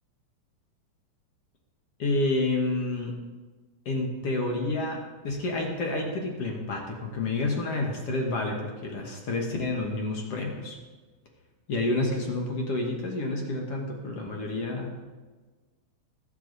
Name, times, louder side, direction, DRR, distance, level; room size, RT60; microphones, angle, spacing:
voice 1, 2.0-3.1 3.9-10.8 11.7-15.0, left 2 dB, 50° left, 1 dB, 2.0 m, -29 dB
19.5 x 8.7 x 4.1 m, 1.3 s
omnidirectional pair, 4.2 m